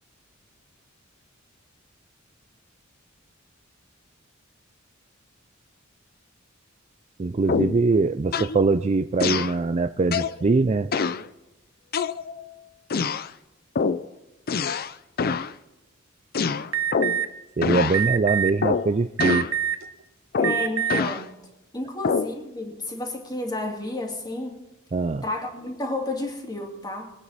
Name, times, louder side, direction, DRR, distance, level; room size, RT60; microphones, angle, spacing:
voice 1, 7.2-10.9 17.6-19.5 24.9-25.2, right 3 dB, 35° right, 9 dB, 0.4 m, -22 dB
sound 1, 7.5-7.8 8.3-8.6 9.2-9.6 10.1-10.4 10.9-11.2 11.9-12.5 12.9-13.3 13.7-14.1 14.5-14.9 15.2-15.5 16.3-17.3 17.6-18.0 18.6-18.9 19.2-19.5 20.3-21.2 22.0-22.3, left 5 dB, 50° left, 0.6 m, -25 dB
Alarm, 16.7-17.2 17.9-18.5 19.2-19.8 20.4-21.0, right 10 dB, 75° right, 1.1 m, -24 dB
voice 2, 20.4-21.4 21.7-24.6 25.2-27.1, left 2 dB, 20° left, 1 dB, 2.8 m, -31 dB
23.0 x 9.4 x 4.1 m, 1.0 s
head